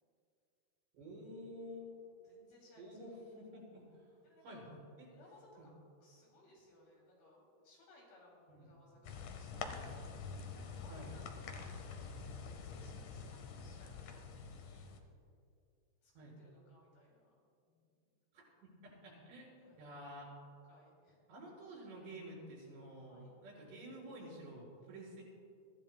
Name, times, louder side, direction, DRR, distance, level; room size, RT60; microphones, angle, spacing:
voice 1, 0.9-1.9 2.8-4.1 4.4-5.1 5.6-5.7 8.5-8.7 10.9-11.1 13.1-13.3 16.1-16.4 18.3-20.3 21.3-25.2, equal, 90° right, -4 dB, 6.4 m, -51 dB
voice 2, 1.9-3.2 4.2-4.6 5.1-5.7 6.0-9.8 10.5-14.9 16.0-17.4 17.7-18.0 19.6-19.9 20.6-21.2 22.9-23.3, left 2 dB, 60° left, -3 dB, 4.7 m, -64 dB
sound 1, 9.0-15.0, left 5 dB, 80° left, 1.8 m, -46 dB
23.5 x 15.0 x 2.3 m, 2.5 s
omnidirectional pair, 4.9 m